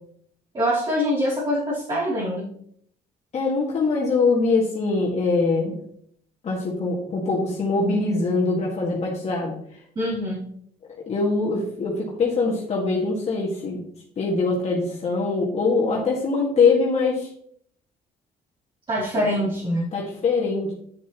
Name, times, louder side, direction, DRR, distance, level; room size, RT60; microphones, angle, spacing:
voice 1, 0.5-2.5 9.9-10.5 18.9-19.9, equal, 30° right, -7 dB, 3.0 m, -24 dB
voice 2, 3.3-5.8 6.4-9.5 11.1-13.8 14.2-17.3 19.1-19.2 19.9-20.7, left 3 dB, 40° left, -4 dB, 1.9 m, -23 dB
8.9 x 7.3 x 3.0 m, 0.65 s
cardioid pair, 110°, 17 cm